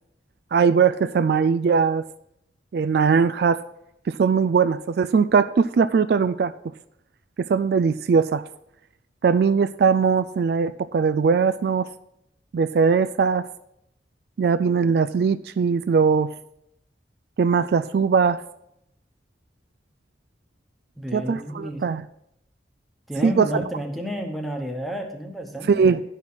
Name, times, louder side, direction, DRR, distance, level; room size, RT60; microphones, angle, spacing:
voice 1, 0.5-2.1 2.7-3.6 4.1-6.5 7.4-8.4 9.2-11.9 12.5-13.5 14.4-16.3 17.4-18.4 21.1-22.0 23.2-23.5 25.7-26.0, right 5 dB, 60° right, 12 dB, 0.3 m, -20 dB
voice 2, 21.0-21.8 23.1-25.9, equal, ahead, 3 dB, 1.1 m, -31 dB
11.5 x 5.7 x 6.1 m, 0.79 s
head